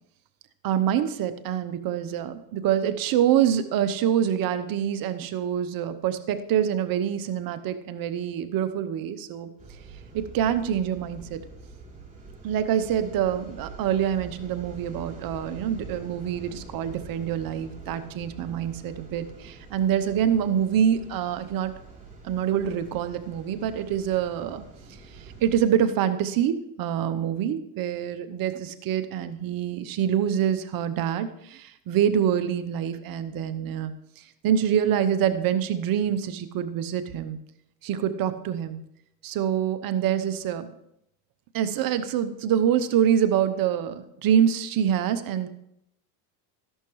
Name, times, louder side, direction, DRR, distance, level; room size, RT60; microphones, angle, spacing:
voice 1, 0.6-9.5 10.1-11.4 12.4-21.7 22.2-24.6 25.1-37.4 37.8-38.8 39.2-40.7 41.5-45.5, right 9 dB, 50° right, 11 dB, 0.9 m, -26 dB
sound 1, 9.6-25.6, right 4 dB, 15° right, 3.1 m, -45 dB
13.5 x 11.0 x 3.1 m, 0.78 s
supercardioid pair, 105°, 45 cm